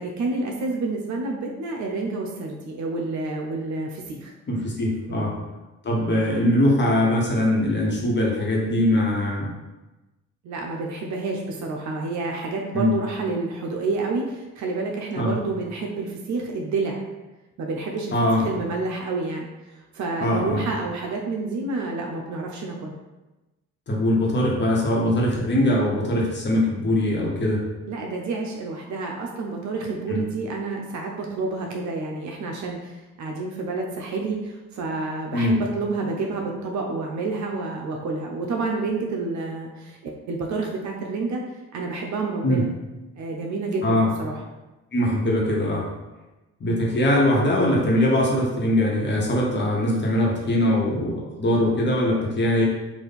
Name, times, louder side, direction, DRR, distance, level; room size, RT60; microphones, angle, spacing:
voice 1, 0.0-4.3 5.1-5.3 10.4-17.0 17.6-18.1 18.4-22.9 27.9-41.4 41.7-42.7 43.1-44.3, right 3 dB, 70° right, 1 dB, 0.6 m, -29 dB
voice 2, 4.5-5.4 5.8-9.5 12.7-12.9 15.1-15.3 18.1-18.4 20.2-20.6 23.9-27.7 30.1-30.2 35.3-35.5 42.4-42.6 43.8-44.1 44.9-45.9 46.6-52.6, left 1 dB, 35° left, -3 dB, 1.2 m, -21 dB
3.5 x 2.5 x 4.1 m, 1.1 s
cardioid pair, 90°, 30 cm